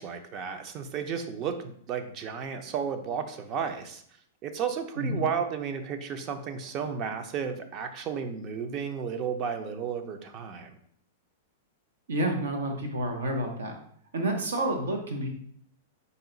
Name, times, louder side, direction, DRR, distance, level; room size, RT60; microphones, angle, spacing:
voice 1, 0.0-4.0 4.4-10.7, right 7 dB, 35° right, 7 dB, 0.5 m, -33 dB
voice 2, 5.0-5.3 12.1-13.7 14.1-15.3, right 1 dB, 90° right, 3 dB, 0.9 m, -29 dB
4.0 x 2.3 x 3.8 m, 0.63 s
hypercardioid pair, 130°, 0 cm